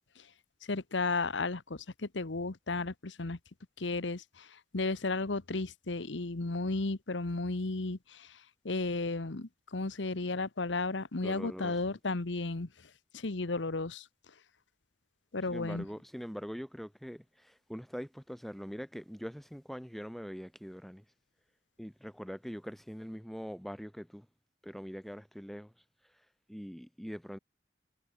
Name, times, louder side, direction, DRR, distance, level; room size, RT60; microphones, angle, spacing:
voice 1, 0.6-3.4 3.8-4.5 4.7-8.3 8.6-12.7 13.1-14.0 15.3-15.8, left 3 dB, 85° left, 1.2 m, -34 dB
voice 2, 11.2-11.8 15.5-21.0 21.8-24.3 24.6-25.7 26.5-27.4, equal, ahead, 5.1 m, -43 dB
head